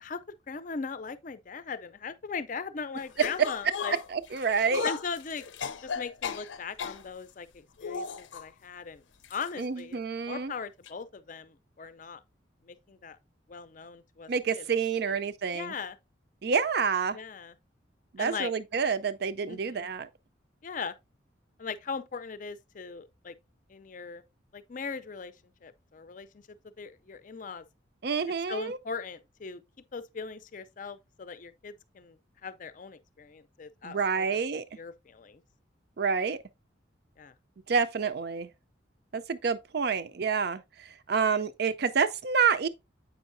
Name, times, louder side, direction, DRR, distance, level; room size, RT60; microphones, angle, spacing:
voice 1, 0.5-4.0 4.8-5.4 5.8-9.0 9.3-10.0 10.3-12.2 12.6-13.2 13.5-14.6 15.1-15.2 15.5-16.0 17.1-17.5 18.2-18.5 19.5-19.9 20.6-20.9 21.6-23.3 23.7-24.2 24.5-25.3 25.6-26.4 26.8-27.6 28.5-29.6 29.9-34.4 34.8-35.4 37.2-37.3, left 5 dB, 45° left, 0.5 m, -39 dB
sound 1, 3.2-7.0 7.8-8.4 9.2-9.5 9.8-9.9 10.9-11.0, left 5 dB, 90° left, 0.6 m, -36 dB
voice 2, 3.9-4.9 9.6-10.5 14.3-15.7 16.4-17.2 18.1-20.1 28.0-28.8 33.8-34.6 36.0-36.4 37.7-38.5 39.1-40.6 41.1-42.7, right 5 dB, 55° right, 0.5 m, -28 dB
7.9 x 5.4 x 2.6 m
head